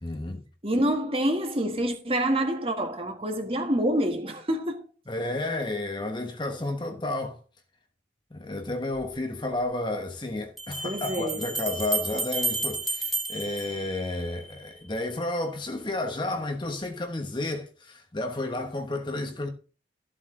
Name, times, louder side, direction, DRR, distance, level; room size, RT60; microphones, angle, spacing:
voice 1, 0.0-0.4 5.1-7.4 8.3-19.5, left 2 dB, 25° left, 1.1 m, -31 dB
voice 2, 0.6-4.9 10.8-11.4, right 1 dB, 30° right, 1.6 m, -27 dB
Bell, 8.9-9.0 10.6-14.5, right 2 dB, ahead, 2.3 m, -31 dB
13.5 x 7.5 x 3.8 m
head